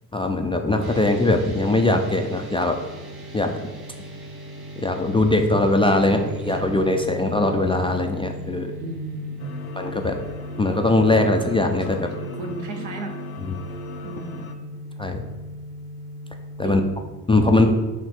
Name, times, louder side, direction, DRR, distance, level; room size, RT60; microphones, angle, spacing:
voice 1, 0.1-2.8 3.3-3.5 4.8-8.7 9.8-10.2 10.6-12.1 15.0-15.2 16.6-16.8 17.3-17.7, left 2 dB, 10° left, 3 dB, 0.3 m, -20 dB
sound 1, 0.8-16.8, equal, 50° right, 1.2 m, -37 dB
voice 2, 5.9-6.8 8.8-9.6 11.9-13.2 14.0-14.6 16.6-16.8 17.6-17.7, right 3 dB, 70° right, 3 dB, 1.0 m, -35 dB
sound 2, 9.4-14.5, left 1 dB, 65° left, 0.8 m, -40 dB
6.4 x 3.2 x 4.8 m, 1.2 s
figure-of-eight pair, 40°, 49 cm